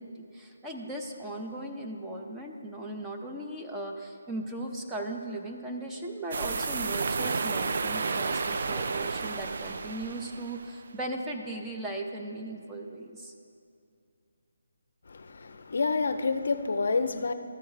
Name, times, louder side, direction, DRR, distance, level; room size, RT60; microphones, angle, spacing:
voice 1, 0.0-13.3, right 1 dB, 10° right, 0 dB, 0.6 m, -37 dB
sound 1, 6.3-10.8, right 4 dB, 55° right, 0.4 m, -31 dB
voice 2, 15.1-17.3, left 4 dB, 65° left, 9 dB, 0.5 m, -28 dB
13.5 x 4.6 x 4.7 m, 2.5 s
figure-of-eight pair, 155°, 0 cm